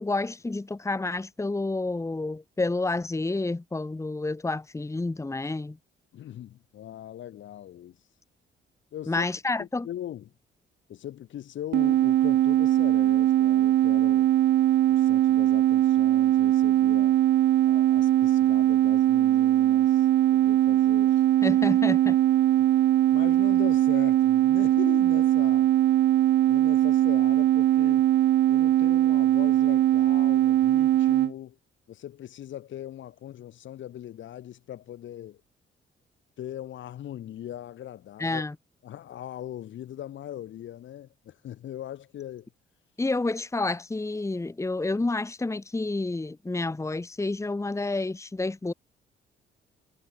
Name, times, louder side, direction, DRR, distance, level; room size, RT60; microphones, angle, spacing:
voice 1, 0.0-5.8 9.1-9.9 21.4-22.2 38.2-38.5 43.0-48.7, left 2 dB, 15° left, 1.5 m, -29 dB
voice 2, 6.1-8.0 8.9-9.3 9.6-10.3 10.9-14.3 14.9-17.2 17.7-20.1 20.3-21.2 23.1-25.7 26.5-28.1 28.5-31.6 31.9-35.4 36.4-38.4 38.8-42.5, left 11 dB, 70° left, 4.2 m, -40 dB
sound 1, 11.7-31.3, right 13 dB, 60° right, 0.5 m, -21 dB
cardioid pair, 90°, 20 cm